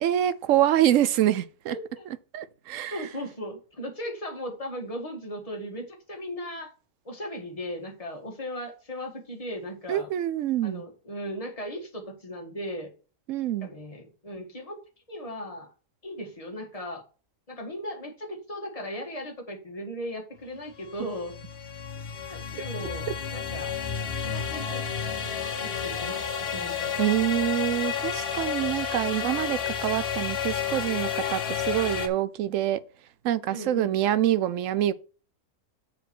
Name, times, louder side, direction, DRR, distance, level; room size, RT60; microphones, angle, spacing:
voice 1, 0.0-1.8 2.3-3.0 9.9-10.8 13.3-13.7 27.0-32.8 33.2-34.9, right 12 dB, 65° right, 0.9 m, -25 dB
voice 2, 1.7-2.1 2.9-6.7 7.1-10.1 10.6-12.9 13.6-14.8 15.1-15.7 16.0-17.0 17.5-21.3 22.3-23.8 24.2-24.9 25.6-27.1 33.5-34.0, equal, 25° left, 1.8 m, -37 dB
sound 1, 20.7-32.1, left 7 dB, 45° left, 1.2 m, -31 dB
7.1 x 4.4 x 6.1 m
omnidirectional pair, 1.6 m